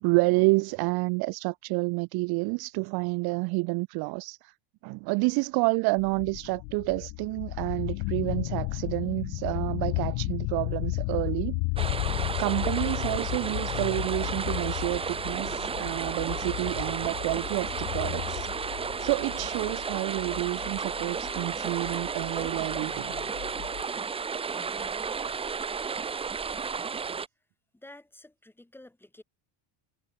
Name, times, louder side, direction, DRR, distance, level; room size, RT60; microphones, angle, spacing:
voice 1, 0.0-4.5 4.8-11.6 12.3-18.5 19.0-23.1, right 28 dB, 50° right, 0.5 m, -29 dB
sound 1, 6.0-23.8, left 37 dB, 80° left, 2.5 m, -34 dB
sound 2, 11.8-27.3, right 5 dB, 10° right, 0.7 m, -33 dB
voice 2, 27.7-29.2, left 1 dB, 5° left, 4.9 m, -50 dB
cardioid pair, 175°, 49 cm